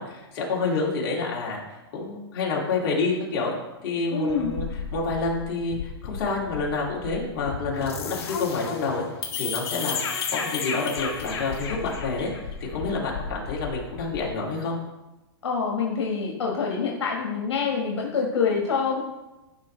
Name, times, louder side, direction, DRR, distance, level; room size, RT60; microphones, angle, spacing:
voice 1, 0.0-1.6 1.9-3.5 3.8-9.0 9.4-10.1 10.3-12.3 12.6-14.8, left 3 dB, 50° left, -3 dB, 2.6 m, -28 dB
voice 2, 4.1-4.5 15.4-19.0, left 5 dB, 85° left, -1 dB, 1.7 m, -26 dB
sound 1, 4.3-14.3, left 6 dB, 70° left, 1.5 m, -33 dB
11.5 x 5.3 x 3.3 m, 1.0 s
hypercardioid pair, 140°, 14 cm